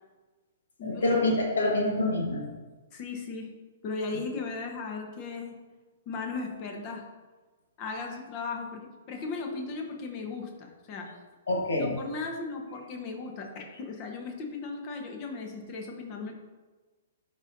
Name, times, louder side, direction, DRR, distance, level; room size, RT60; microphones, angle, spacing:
voice 1, 0.8-2.5 11.5-12.0, left 2 dB, 70° left, 0 dB, 1.4 m, -26 dB
voice 2, 2.9-3.5 3.8-5.5 6.1-7.1 7.8-11.1 11.7-16.3, left 4 dB, 35° left, 3 dB, 1.1 m, -37 dB
10.0 x 3.9 x 2.7 m, 1.3 s
figure-of-eight pair, 115°, 0 cm